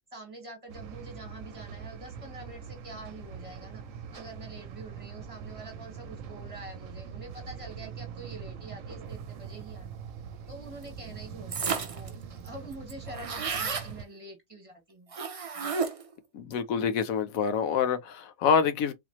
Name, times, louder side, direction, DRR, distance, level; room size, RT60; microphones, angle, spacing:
voice 1, 0.0-10.0 10.5-15.1 15.5-15.8, right 2 dB, 25° right, 1.7 m, -46 dB
sound 1, 0.7-14.0, right 7 dB, 75° right, 1.0 m, -43 dB
sound 2, 11.5-12.1 12.5-12.6 12.7-13.9 15.1-16.1, right 5 dB, 55° right, 0.3 m, -32 dB
voice 2, 16.3-18.9, left 6 dB, 85° left, 1.1 m, -26 dB
4.0 x 2.9 x 2.8 m
omnidirectional pair, 1.4 m